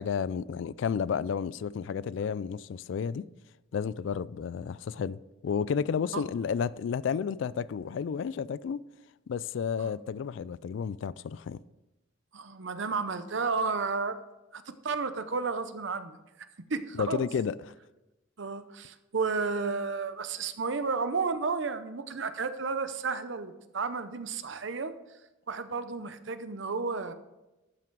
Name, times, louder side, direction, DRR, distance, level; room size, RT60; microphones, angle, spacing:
voice 1, 0.0-3.3 3.7-8.8 9.3-11.6 17.0-17.7, left 6 dB, 65° left, 0.3 m, -32 dB
voice 2, 12.3-14.2 14.5-16.2 16.7-17.2 18.4-24.9 25.5-27.1, right 4 dB, 65° right, 0.7 m, -32 dB
12.0 x 5.9 x 4.6 m
head